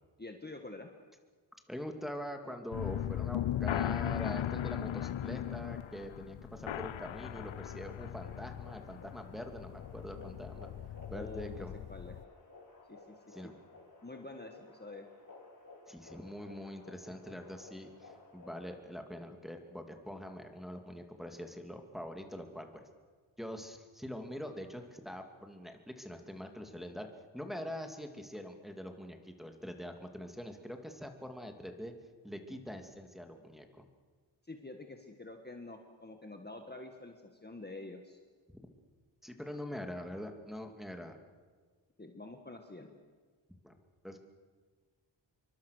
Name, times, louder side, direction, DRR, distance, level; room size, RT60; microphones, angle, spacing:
voice 1, 0.2-0.9 11.1-12.2 12.9-13.1 13.4-13.5 14.0-15.0 34.4-37.1 37.4-38.2 42.0-43.0, left 2 dB, 20° left, 4 dB, 1.7 m, -47 dB
voice 2, 1.7-10.7 11.1-11.8 13.3-13.5 15.9-22.8 23.4-27.1 27.3-31.9 32.2-33.7 39.2-41.2 43.6-43.8 44.0-44.2, equal, ahead, 4 dB, 2.4 m, -44 dB
sound 1, 2.7-12.2, left 11 dB, 75° left, 0.6 m, -38 dB
sound 2, 6.5-18.7, left 3 dB, 40° left, 4.6 m, -56 dB
27.0 x 23.5 x 6.5 m, 1.5 s
wide cardioid pair, 115°, 48 cm